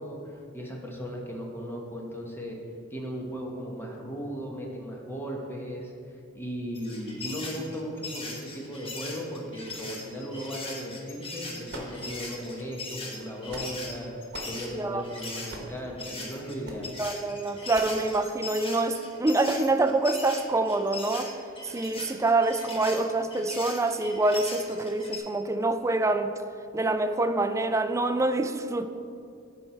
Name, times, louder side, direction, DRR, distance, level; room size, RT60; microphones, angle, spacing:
voice 1, 0.0-2.6 2.9-5.9 6.3-16.9, equal, 10° left, -1 dB, 1.2 m, -36 dB
sound 1, 6.7-15.5 16.0-25.2, left 3 dB, 30° left, 1.1 m, -39 dB
sound 2, 11.7-12.5 13.2-13.9 14.3-14.6 15.5-15.8 16.6-16.9 17.7-18.1, right 2 dB, 55° right, 1.1 m, -41 dB
voice 2, 17.0-21.3 21.6-26.3 26.7-28.8, right 2 dB, 15° right, 8 dB, 0.3 m, -26 dB
11.0 x 4.5 x 4.4 m, 2.4 s
head